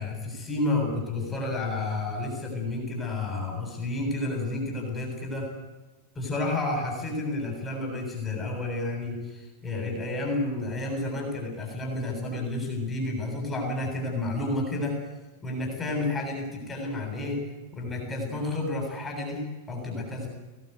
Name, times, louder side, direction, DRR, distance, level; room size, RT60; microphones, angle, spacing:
voice 1, 0.0-5.5 6.1-15.0 15.4-17.4 17.7-20.3, left 2 dB, 15° left, 1 dB, 7.7 m, -30 dB
24.0 x 17.5 x 8.3 m, 1.2 s
figure-of-eight pair, 90°, 0 cm